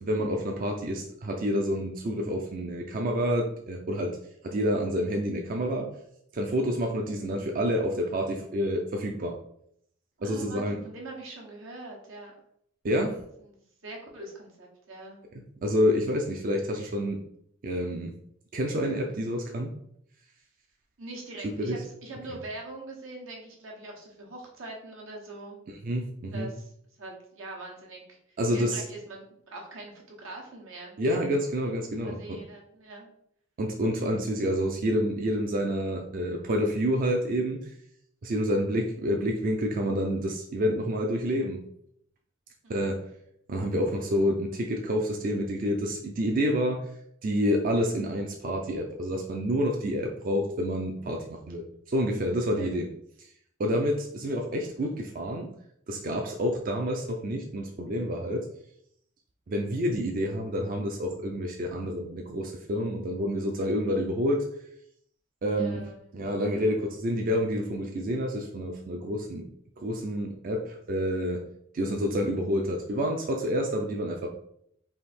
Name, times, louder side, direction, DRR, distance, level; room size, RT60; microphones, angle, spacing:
voice 1, 0.0-4.2 4.4-5.9 6.3-9.4 10.2-10.8 12.8-13.2 15.6-17.2 17.6-18.1 18.5-19.7 21.6-21.8 25.7-26.5 28.4-28.8 31.0-32.4 33.6-37.7 38.2-41.6 42.7-43.0 43.5-46.8 47.2-52.9 53.6-55.5 55.9-58.5 59.5-64.5 65.4-65.9 66.1-69.5 69.8-71.4 71.7-74.3, equal, 45° right, 2 dB, 0.4 m, -28 dB
voice 2, 10.2-12.3 13.4-15.2 21.0-25.6 26.3-26.7 27.0-29.2 29.5-31.0 32.0-33.1 42.6-43.0 52.5-52.7 65.4-66.2, right 2 dB, 85° right, -2 dB, 1.2 m, -43 dB
3.5 x 2.6 x 4.2 m, 0.70 s
head